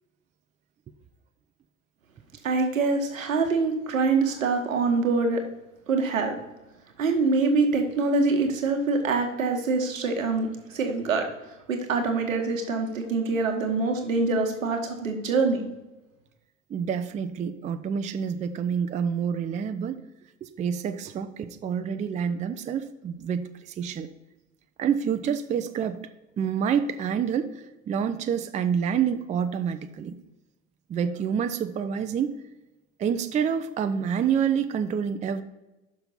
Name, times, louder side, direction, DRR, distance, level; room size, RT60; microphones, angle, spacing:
voice 1, 2.4-5.4 5.9-6.4 7.0-11.3 11.7-15.7, right 3 dB, 80° right, 3 dB, 1.3 m, -25 dB
voice 2, 16.7-20.0 20.4-24.1 24.8-26.0 26.4-30.2 30.9-32.4 33.0-35.4, right 7 dB, 20° right, 9 dB, 0.4 m, -28 dB
5.9 x 5.6 x 5.4 m, 1.0 s
figure-of-eight pair, 70°, 39 cm